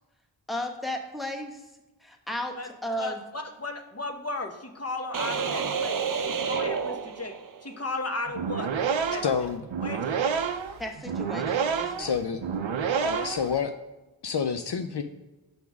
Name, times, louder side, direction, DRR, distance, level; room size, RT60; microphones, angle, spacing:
voice 1, 0.5-1.6 2.0-2.6 2.8-3.2 10.8-12.1, left 1 dB, ahead, 2 dB, 1.0 m, -34 dB
voice 2, 3.0-6.0 6.5-7.4 7.6-8.7 9.1-9.2 9.8-10.4 13.1-13.3, left 2 dB, 35° left, 5 dB, 0.8 m, -35 dB
sound 1, 5.1-7.8, right 6 dB, 50° right, 0.5 m, -30 dB
sound 2, 8.3-13.5, right 6 dB, 90° right, 0.6 m, -29 dB
voice 3, 9.2-9.6 12.0-12.4 13.0-13.7 14.2-15.0, left 6 dB, 65° left, 7 dB, 0.5 m, -28 dB
6.0 x 3.5 x 6.0 m, 1.1 s
wide cardioid pair, 45°, 45 cm